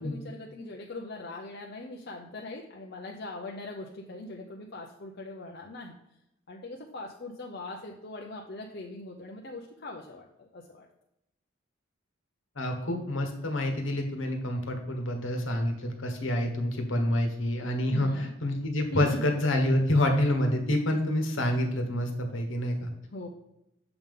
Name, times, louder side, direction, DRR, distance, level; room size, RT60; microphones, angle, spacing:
voice 1, 0.0-6.0 6.5-10.9 17.9-18.3 18.9-19.2 23.1-23.3, left 2 dB, 50° left, 0 dB, 0.6 m, -41 dB
voice 2, 12.6-22.9, left 1 dB, 65° left, 4 dB, 1.2 m, -27 dB
6.9 x 3.7 x 5.3 m, 0.87 s
head